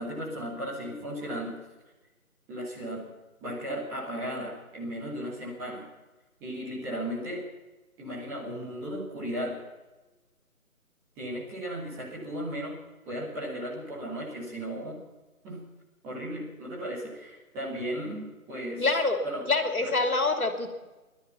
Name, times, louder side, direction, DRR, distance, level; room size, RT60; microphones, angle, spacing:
voice 1, 0.0-1.6 2.5-3.1 3.4-5.9 6.4-7.4 8.0-9.6 11.1-12.8 13.0-15.0 15.4-15.6 16.0-18.8 19.2-19.4 19.8-20.0, equal, 5° right, -8 dB, 1.8 m, -35 dB
voice 2, 18.8-20.7, left 3 dB, 75° left, 6 dB, 3.1 m, -26 dB
20.5 x 12.5 x 5.7 m, 1.1 s
figure-of-eight pair, 155°, 43 cm